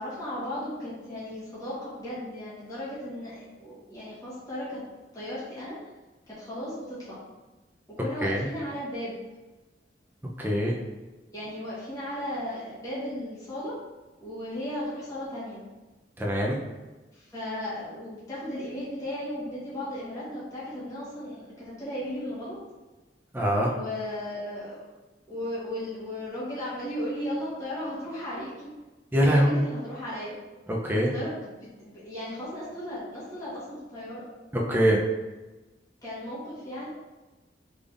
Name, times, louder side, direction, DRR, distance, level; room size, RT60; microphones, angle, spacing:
voice 1, 0.0-4.8 5.1-5.8 6.3-7.2 8.0-9.1 11.3-13.8 14.2-15.6 17.1-22.6 23.7-24.9 25.3-28.7 29.2-30.4 31.1-34.3 36.0-36.9, left 1 dB, 20° left, -10 dB, 1.2 m, -35 dB
voice 2, 10.4-10.7 16.2-16.6 23.3-23.7 29.1-29.6 30.7-31.1 34.5-35.0, equal, 10° right, -2 dB, 0.5 m, -23 dB
3.8 x 3.4 x 2.5 m, 1.1 s
head